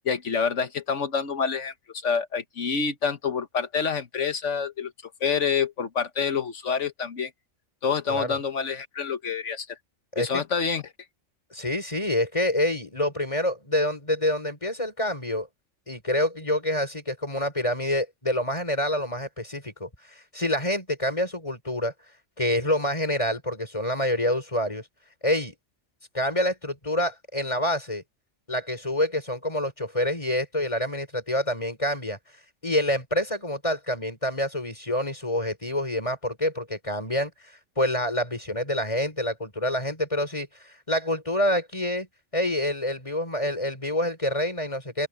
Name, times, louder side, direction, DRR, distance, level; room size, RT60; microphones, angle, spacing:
voice 1, 0.1-1.7 2.0-4.9 5.2-7.3 7.8-9.8 10.2-10.9, left 6 dB, 75° left, 1.7 m, -27 dB
voice 2, 10.1-10.4 11.5-15.5 15.9-21.9 22.4-24.9 25.2-25.5 26.1-28.0 28.5-32.2 32.6-37.3 37.8-42.1 42.3-45.1, left 1 dB, 25° left, 4.6 m, -27 dB
open air
omnidirectional pair, 1.3 m